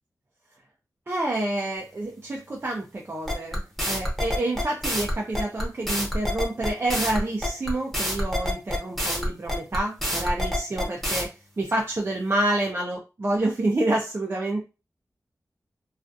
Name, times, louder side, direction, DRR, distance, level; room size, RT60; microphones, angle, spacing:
voice 1, 1.1-11.3 11.6-14.6, right 1 dB, 35° right, -1 dB, 0.4 m, -28 dB
sound 1, 3.3-11.2, equal, ahead, 0.8 m, -27 dB
2.4 x 2.3 x 2.5 m, 0.30 s
wide cardioid pair, 100°, 6 cm